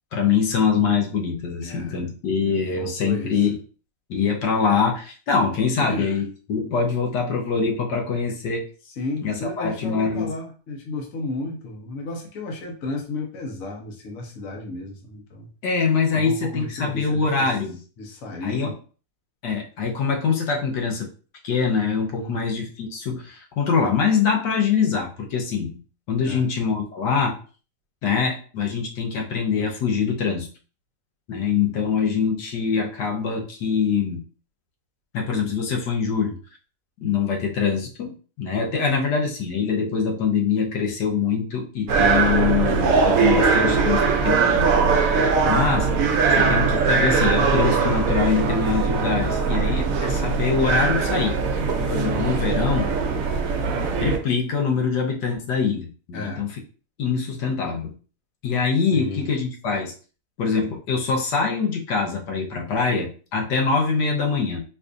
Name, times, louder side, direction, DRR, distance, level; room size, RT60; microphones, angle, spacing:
voice 1, 0.1-3.6 4.1-8.6 9.2-10.3 15.6-17.8 18.4-18.7 19.4-21.1 21.4-25.8 26.1-27.4 28.0-30.5 31.3-34.2 35.1-36.3 37.0-44.7 45.2-45.9 46.3-51.4 51.8-52.9 54.0-56.5 57.0-57.9 58.4-59.9 60.4-64.6, left 5 dB, 85° left, 0 dB, 1.5 m, -24 dB
voice 2, 1.6-2.0 2.4-2.5 2.8-3.5 5.8-6.2 8.8-15.5 16.1-17.5 18.0-18.7 22.2-22.4 26.2-26.5 45.4-45.7 46.3-46.5 56.1-56.4 58.9-59.3, left 2 dB, 60° left, 1 dB, 1.2 m, -33 dB
sound 1, 41.9-54.2, right 5 dB, 65° right, 0.9 m, -21 dB
4.5 x 2.6 x 2.5 m, 0.39 s
omnidirectional pair, 1.8 m